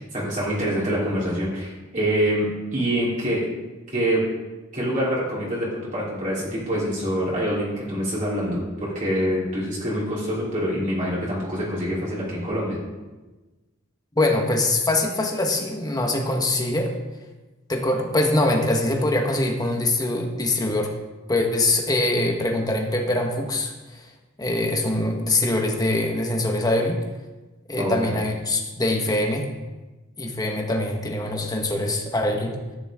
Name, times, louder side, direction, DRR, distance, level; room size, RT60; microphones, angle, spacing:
voice 1, 0.0-3.4 3.9-4.2 4.7-12.8 27.8-28.2, equal, 40° right, -7 dB, 3.7 m, -25 dB
voice 2, 14.1-16.9 17.7-20.9 21.3-24.1 24.4-27.0 27.7-29.4 30.2-32.5, left 2 dB, 20° left, 2 dB, 1.6 m, -23 dB
14.0 x 10.5 x 3.8 m, 1.2 s
head